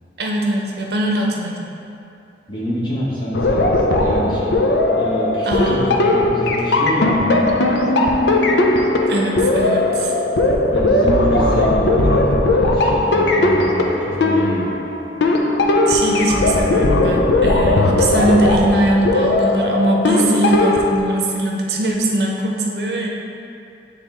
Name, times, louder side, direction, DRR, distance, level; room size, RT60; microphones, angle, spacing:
voice 1, 0.2-1.7 5.4-6.2 9.1-10.1 15.9-23.1, right 1 dB, 65° right, 0 dB, 0.7 m, -21 dB
voice 2, 2.5-4.5 4.9-7.5 10.7-14.8, equal, 25° left, -7 dB, 1.2 m, -26 dB
sound 1, 3.3-21.0, left 2 dB, 80° left, 0.5 m, -17 dB
8.4 x 3.4 x 3.5 m, 2.6 s
head